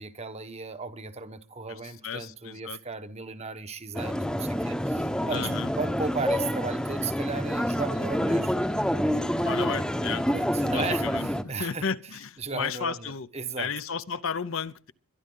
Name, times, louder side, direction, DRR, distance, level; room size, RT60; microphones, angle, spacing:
voice 1, 0.0-8.5 10.3-11.9 12.4-13.7, right 4 dB, 30° right, 1.1 m, -35 dB
voice 2, 2.0-2.8 5.3-5.7 9.4-10.2 10.7-11.3 11.6-13.3 13.6-14.9, left 6 dB, 60° left, 0.7 m, -33 dB
sound 1, 3.9-11.4, equal, 5° left, 0.9 m, -27 dB
23.0 x 11.0 x 3.8 m
head